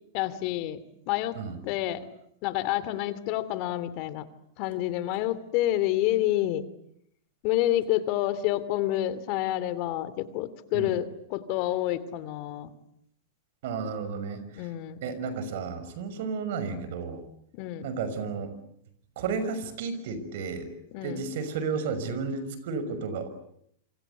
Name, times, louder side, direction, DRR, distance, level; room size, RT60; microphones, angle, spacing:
voice 1, 0.1-1.4 1.6-2.1 2.4-4.3 4.6-6.6 7.4-12.7 14.6-15.0 17.5-17.9 20.9-21.2, left 14 dB, 50° left, 15 dB, 2.6 m, -28 dB
voice 2, 13.6-14.7 15.0-17.2 17.8-18.6 19.2-20.7 21.0-23.3, right 5 dB, 65° right, 12 dB, 6.0 m, -32 dB
27.5 x 25.0 x 8.4 m, 0.71 s
hypercardioid pair, 120°, 0 cm